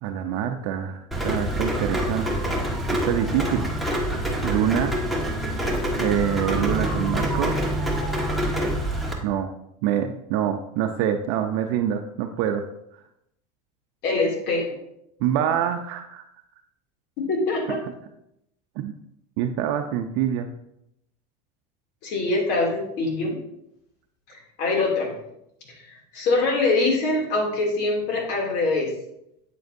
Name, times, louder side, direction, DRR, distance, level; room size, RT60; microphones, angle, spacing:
voice 1, 0.0-2.3 2.9-3.6 4.4-4.9 6.0-7.6 9.2-9.5 9.8-12.6 15.2-16.2 18.8-18.9 19.4-20.5, right 9 dB, 65° right, 5 dB, 0.6 m, -25 dB
Rain, 1.1-9.1, equal, ahead, 1.4 m, -26 dB
voice 2, 14.0-14.7 17.2-17.8 22.0-23.4 24.3-25.1 25.7-25.9 26.1-28.9, left 3 dB, 55° left, 0 dB, 2.7 m, -24 dB
8.3 x 7.7 x 2.7 m, 0.80 s
supercardioid pair, 120°, 21 cm